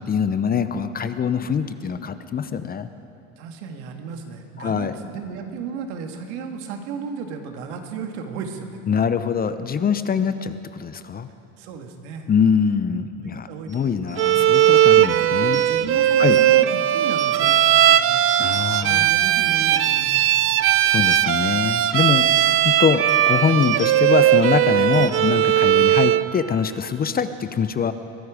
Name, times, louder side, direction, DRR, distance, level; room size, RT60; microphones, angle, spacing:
voice 1, 0.0-2.9 4.6-4.9 8.9-11.3 12.3-15.6 16.2-16.4 18.4-19.1 20.8-22.3 22.6-27.9, left 7 dB, 25° left, 12 dB, 0.7 m, -23 dB
voice 2, 3.4-8.8 11.6-12.3 13.2-13.9 14.3-18.2 18.8-20.6 22.1-22.4 25.9-26.1, right 5 dB, 75° right, 5 dB, 1.9 m, -35 dB
sound 1, 14.1-16.7 17.1-17.8 18.3-19.1 19.4-20.7 21.0-22.0 22.4-22.6 23.1-24.2 24.9-25.5, right 5 dB, 20° right, 1.2 m, -41 dB
Bowed string instrument, 14.2-26.3, right 12 dB, 40° right, 0.6 m, -18 dB
22.0 x 12.5 x 5.0 m, 2.7 s
supercardioid pair, 95°, 34 cm